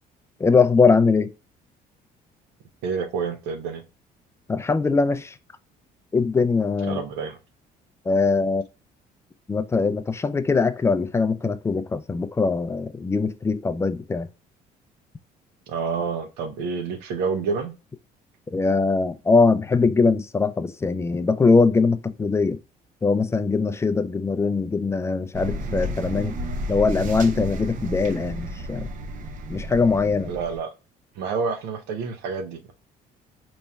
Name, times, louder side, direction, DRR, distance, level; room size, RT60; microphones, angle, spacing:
voice 1, 0.4-1.3 4.5-5.4 6.1-7.0 8.1-8.6 9.5-14.3 18.5-22.6 23.0-26.3 26.7-28.9 29.5-30.3, left 4 dB, 15° left, 0.3 m, -21 dB
voice 2, 2.8-3.8 6.8-7.4 15.7-17.7 30.2-30.7 31.2-32.7, right 5 dB, 90° right, 0.8 m, -28 dB
sound 1, 25.3-30.6, right 1 dB, 50° right, 0.6 m, -32 dB
4.1 x 3.1 x 2.2 m
cardioid pair, 110°, 17 cm